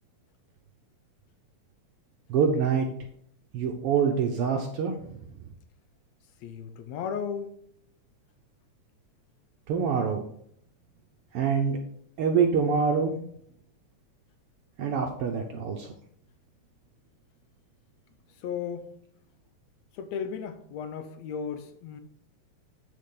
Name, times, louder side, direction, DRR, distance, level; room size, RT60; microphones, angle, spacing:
voice 1, 2.3-2.9 3.5-5.2 9.7-10.2 11.3-11.8 12.2-13.2 14.8-15.9, right 6 dB, 70° right, 3 dB, 1.4 m, -25 dB
voice 2, 6.4-7.5 18.4-18.9 19.9-22.0, left 7 dB, 75° left, 9 dB, 1.9 m, -35 dB
8.2 x 6.7 x 3.8 m, 0.66 s
omnidirectional pair, 3.3 m